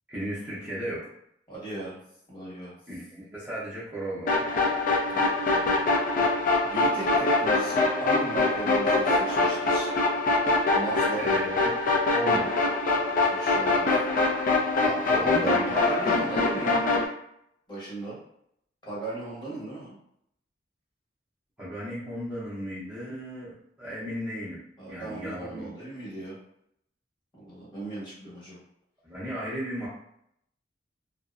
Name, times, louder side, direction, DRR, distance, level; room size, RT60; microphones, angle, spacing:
voice 1, 0.1-1.1 2.9-4.6 11.1-11.7 12.1-12.5 15.2-15.7 21.6-24.6 24.9-25.7 29.0-29.9, equal, 10° right, -10 dB, 0.6 m, -35 dB
voice 2, 1.5-2.0 2.3-2.7 5.1-5.8 6.6-9.9 10.7-11.3 13.0-13.9 14.8-16.8 17.7-18.2 18.8-20.0 24.8-26.4 27.4-28.6, right 2 dB, 25° left, -7 dB, 1.0 m, -36 dB
sound 1, 4.3-17.1, left 3 dB, 50° left, 0.4 m, -24 dB
2.5 x 2.0 x 2.4 m, 0.72 s
head